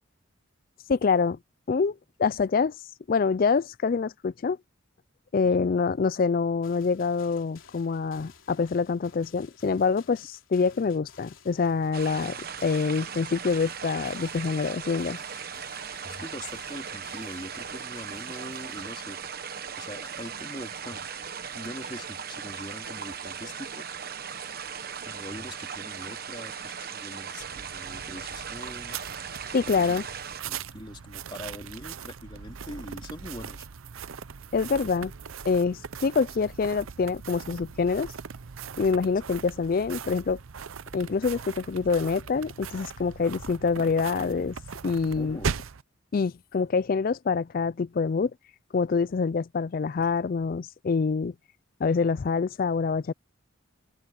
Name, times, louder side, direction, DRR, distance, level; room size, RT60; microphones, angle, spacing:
voice 1, 0.9-1.4 1.7-2.8 3.1-4.6 5.3-12.4 12.6-15.2 29.5-30.0 34.5-35.1 35.5-38.1 38.8-40.4 40.9-44.5 44.8-45.4 46.1-48.3 48.7-51.3 51.8-53.1, left 5 dB, 45° left, 0.3 m, -26 dB
sound 1, 6.6-18.9, left 7 dB, 75° left, 3.2 m, -55 dB
sound 2, 11.9-30.4, right 7 dB, 45° right, 1.2 m, -38 dB
voice 2, 16.0-21.1 21.5-24.0 25.0-29.0 29.7-30.0 30.5-33.7 45.1-45.5, left 1 dB, 25° left, 3.3 m, -42 dB
sound 3, 27.4-45.8, right 6 dB, 80° right, 0.7 m, -39 dB
head